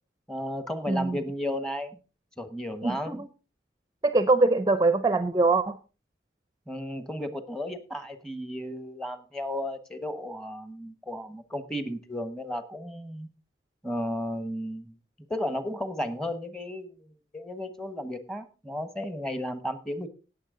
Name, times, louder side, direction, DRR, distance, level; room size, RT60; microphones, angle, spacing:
voice 1, 0.3-2.0 2.4-3.2 6.7-13.3 13.8-14.9 15.3-20.1, equal, 5° left, 10 dB, 1.2 m, -34 dB
voice 2, 0.9-1.2 2.8-3.3 4.0-5.8, right 3 dB, 20° right, 11 dB, 0.6 m, -23 dB
17.5 x 7.1 x 3.8 m, 0.34 s
head